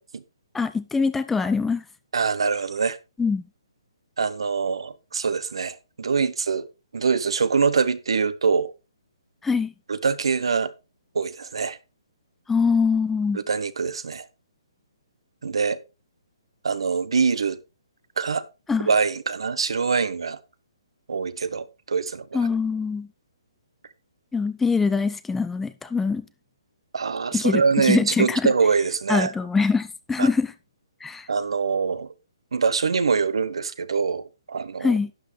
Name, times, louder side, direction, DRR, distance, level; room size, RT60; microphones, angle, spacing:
voice 1, 0.5-1.8 3.2-3.4 9.4-9.7 12.5-13.4 18.7-18.9 22.3-23.1 24.3-26.2 27.3-28.5 29.1-30.5 31.0-31.3 34.8-35.1, left 5 dB, 5° left, 0.6 m, -23 dB
voice 2, 2.1-3.0 4.2-6.7 6.9-8.7 9.9-10.7 11.1-11.8 13.3-14.3 15.4-15.8 16.6-17.6 18.2-18.4 18.9-20.4 21.1-22.5 26.9-29.3 30.2-30.3 31.3-32.1 32.5-35.0, right 5 dB, 70° right, 0.9 m, -24 dB
11.5 x 8.2 x 3.2 m
hypercardioid pair, 140°, 3 cm